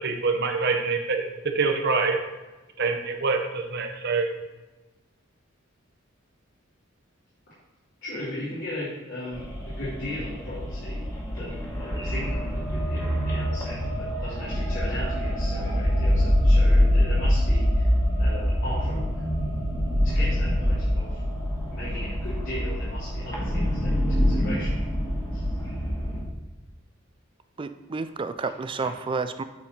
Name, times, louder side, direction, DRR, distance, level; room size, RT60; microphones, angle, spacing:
voice 1, 0.0-2.2 2.8-4.3, right 4 dB, 55° right, 4 dB, 0.9 m, -25 dB
voice 2, 8.0-17.9 18.2-19.2 20.0-21.2 21.7-24.8 25.3-25.5, left 1 dB, 65° left, -12 dB, 2.5 m, -37 dB
sound 1, 9.3-26.2, equal, 15° left, 1.5 m, -25 dB
voice 3, 27.6-29.4, right 4 dB, 25° right, 11 dB, 0.4 m, -30 dB
8.6 x 4.1 x 4.2 m, 1.2 s
head